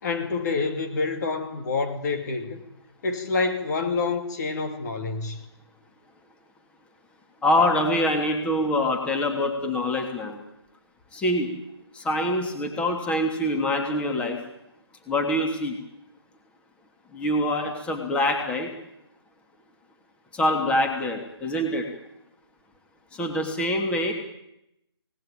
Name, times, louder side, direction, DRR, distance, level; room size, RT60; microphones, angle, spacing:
voice 1, 0.0-2.6 3.0-5.5, left 4 dB, 40° left, 3.0 m, -27 dB
voice 2, 7.4-10.4 11.1-11.5 11.9-14.4 15.1-15.8 17.1-18.7 20.3-21.9 23.1-24.1, left 1 dB, 10° left, 3.0 m, -25 dB
27.0 x 19.0 x 9.1 m
figure-of-eight pair, 150°, 14 cm